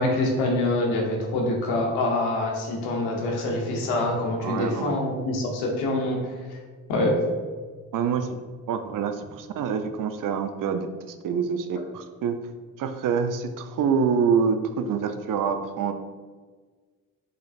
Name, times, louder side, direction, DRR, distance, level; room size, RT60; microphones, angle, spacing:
voice 1, 0.0-6.6 6.9-7.2, left 1 dB, 90° left, 0 dB, 0.9 m, -25 dB
voice 2, 4.4-5.0 7.9-8.4 8.7-12.4 12.8-15.9, right 6 dB, 60° right, 8 dB, 0.6 m, -26 dB
4.8 x 4.1 x 2.4 m, 1.4 s
supercardioid pair, 55°, 37 cm